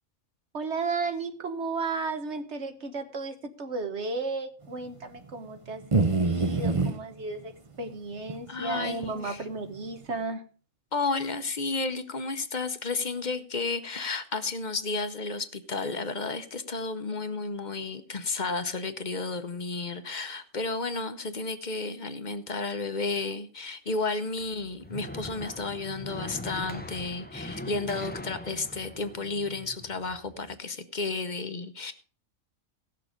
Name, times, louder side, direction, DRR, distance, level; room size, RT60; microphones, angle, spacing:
voice 1, 0.5-7.5 7.8-10.4, right 3 dB, 55° right, 7 dB, 1.4 m, -34 dB
sound 1, 5.9-6.9 8.3-8.4 9.0-9.1, right 3 dB, 30° right, 0.7 m, -24 dB
voice 2, 8.5-9.4 10.9-31.9, left 3 dB, 40° left, 10 dB, 0.9 m, -32 dB
sound 2, 24.4-30.5, left 1 dB, 10° left, 0.6 m, -41 dB
17.0 x 6.8 x 5.1 m, 0.38 s
omnidirectional pair, 1.4 m